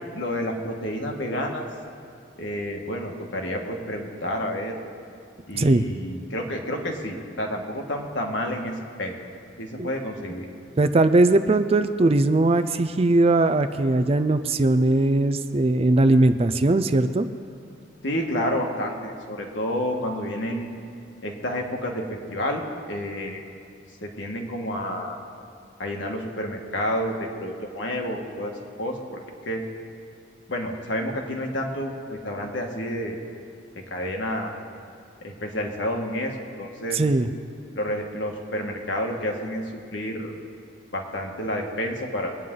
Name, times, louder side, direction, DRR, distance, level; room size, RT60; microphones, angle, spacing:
voice 1, 0.1-1.7 2.4-4.8 5.5-8.7 9.0-9.1 9.6-10.5 18.0-20.8 21.2-23.4 24.0-25.2 25.8-28.5 28.8-29.2 29.4-29.6 30.5-33.2 33.9-34.5 35.2-37.0 37.7-39.6 39.9-40.3 40.9-42.4, equal, 70° left, 1 dB, 1.7 m, -29 dB
voice 2, 10.8-17.3 36.9-37.3, right 2 dB, 30° right, 9 dB, 0.5 m, -20 dB
22.0 x 9.4 x 3.8 m, 2.4 s
head